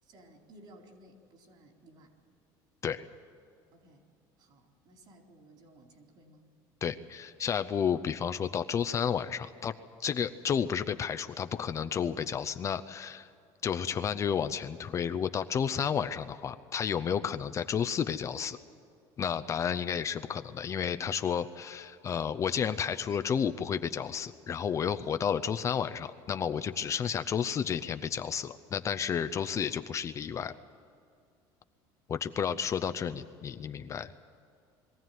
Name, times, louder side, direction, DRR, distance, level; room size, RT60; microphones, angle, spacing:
voice 1, 0.0-2.1 3.7-4.0 4.4-6.5, right 1 dB, 50° right, 2 dB, 4.1 m, -57 dB
voice 2, 6.8-9.7 10.0-13.3 13.6-18.6 19.2-30.5 32.1-34.1, left 7 dB, 30° left, 11 dB, 0.6 m, -31 dB
22.0 x 15.0 x 9.3 m, 2.3 s
cardioid pair, 130°, 10 cm